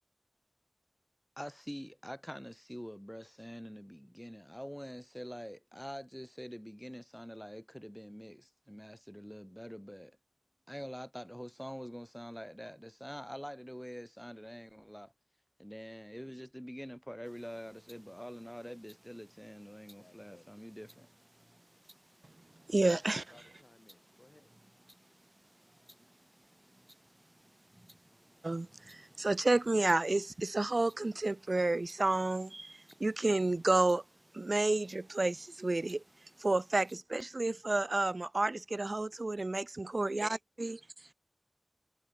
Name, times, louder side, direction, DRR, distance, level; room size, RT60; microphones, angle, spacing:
voice 1, 1.4-10.2 10.7-15.1 15.6-21.1, equal, 5° left, 3.4 m, -45 dB
sound 1, 17.2-37.0, right 1 dB, 20° right, 5.8 m, -63 dB
voice 2, 20.0-20.5 22.8-24.5, left 2 dB, 50° left, 7.3 m, -60 dB
voice 3, 22.7-23.2 28.4-34.0 34.3-36.0 36.4-40.8, right 2 dB, 60° right, 0.6 m, -30 dB
wide cardioid pair, 45°, 0 cm